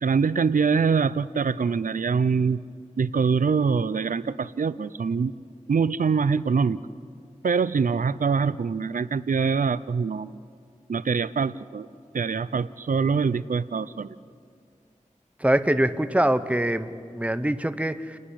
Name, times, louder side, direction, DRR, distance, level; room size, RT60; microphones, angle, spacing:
voice 1, 0.0-2.6 3.0-5.3 5.7-6.8 7.4-10.4 10.9-11.9 12.1-14.2, right 5 dB, 85° right, 17 dB, 0.5 m, -24 dB
voice 2, 15.4-18.2, right 1 dB, 10° right, 12 dB, 0.9 m, -24 dB
29.0 x 11.5 x 9.9 m, 2.2 s
wide cardioid pair, 55°, 13 cm